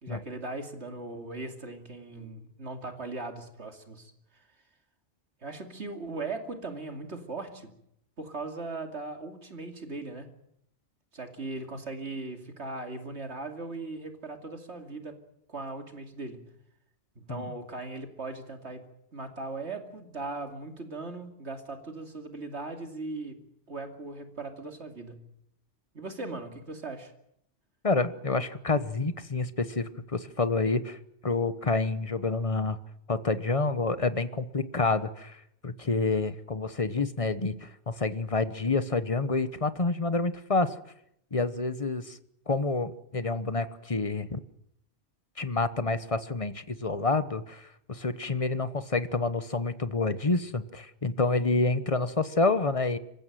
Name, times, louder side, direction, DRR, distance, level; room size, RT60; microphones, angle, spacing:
voice 1, 0.0-4.4 5.4-7.7 8.2-10.3 11.1-15.2 15.5-16.5 17.2-18.8 19.1-23.4 23.7-25.3 25.9-27.1, right 3 dB, 75° right, 5 dB, 2.9 m, -39 dB
voice 2, 27.8-31.0 31.2-32.8 33.1-35.4 35.6-40.7 41.3-42.2 42.5-44.4 45.4-53.0, left 3 dB, 30° left, 13 dB, 1.1 m, -28 dB
26.0 x 15.0 x 9.3 m, 0.76 s
omnidirectional pair, 1.2 m